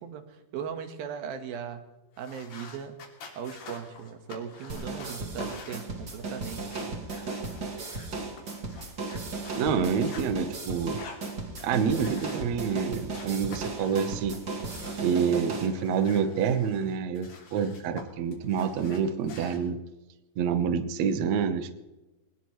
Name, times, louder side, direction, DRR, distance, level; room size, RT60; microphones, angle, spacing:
voice 1, 0.0-1.8 2.2-3.0 3.4-6.9, right 7 dB, 90° right, 7 dB, 3.3 m, -38 dB
sound 1, 2.1-10.3 10.8-12.8 13.1-15.2 15.6-18.0 18.3-19.6, left 4 dB, 80° left, 4.7 m, -48 dB
sound 2, 4.7-15.7, right 3 dB, 35° right, 2.1 m, -36 dB
voice 2, 9.6-11.0 11.6-14.4 15.0-19.8 20.4-21.8, right 6 dB, 65° right, 9 dB, 2.0 m, -27 dB
22.0 x 19.5 x 3.2 m, 1.1 s
omnidirectional pair, 4.1 m